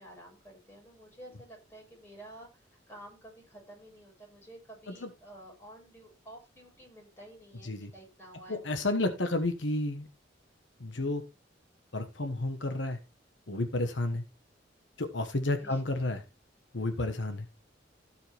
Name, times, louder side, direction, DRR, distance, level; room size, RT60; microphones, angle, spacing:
voice 1, 0.0-9.1 15.6-15.8, right 1 dB, 15° left, -1 dB, 6.0 m, -51 dB
voice 2, 8.5-10.1 10.8-11.2 11.9-13.0 13.5-14.2 15.0-16.2 16.7-17.5, left 2 dB, 75° left, 7 dB, 1.3 m, -31 dB
16.5 x 5.6 x 3.4 m, 0.26 s
head